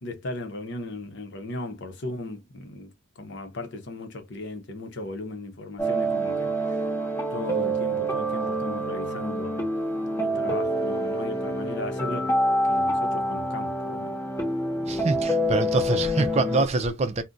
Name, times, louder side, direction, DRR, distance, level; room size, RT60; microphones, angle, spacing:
voice 1, 0.0-2.9 3.2-6.8 7.3-9.6 10.2-12.3 12.7-14.2, left 2 dB, 60° left, 0.8 m, -36 dB
sound 1, 5.8-16.7, right 1 dB, 15° left, 1.0 m, -27 dB
voice 2, 14.9-17.2, right 3 dB, 30° right, 0.4 m, -25 dB
2.4 x 2.2 x 3.8 m
head